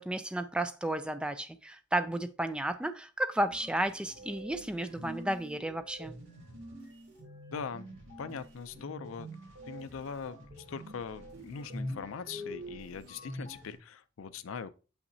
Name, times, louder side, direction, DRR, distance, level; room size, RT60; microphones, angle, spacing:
voice 1, 0.0-6.1, right 1 dB, 5° right, 0.3 m, -33 dB
sound 1, 3.5-13.8, equal, 60° right, 2.9 m, -45 dB
voice 2, 7.5-7.9 8.2-9.3 9.6-14.7, left 6 dB, 75° left, 0.4 m, -41 dB
6.5 x 5.8 x 2.7 m
head